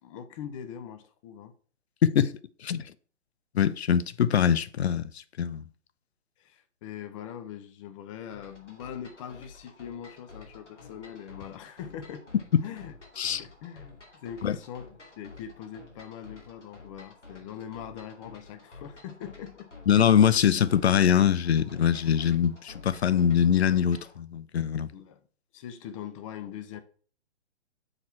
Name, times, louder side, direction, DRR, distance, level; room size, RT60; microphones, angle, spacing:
voice 1, 0.0-1.5 6.4-12.3 12.6-14.0 14.2-19.7 24.9-25.2 25.5-26.8, left 9 dB, 30° left, 0.8 m, -42 dB
voice 2, 2.0-2.3 2.6-2.9 3.5-5.1 5.4-5.6 12.5-12.7 13.2-13.4 14.4-14.6 19.9-24.9, left 9 dB, 65° left, 0.7 m, -23 dB
sound 1, 8.3-24.2, left 3 dB, 85° left, 2.6 m, -50 dB
6.6 x 4.4 x 4.5 m
figure-of-eight pair, 125°, 35 cm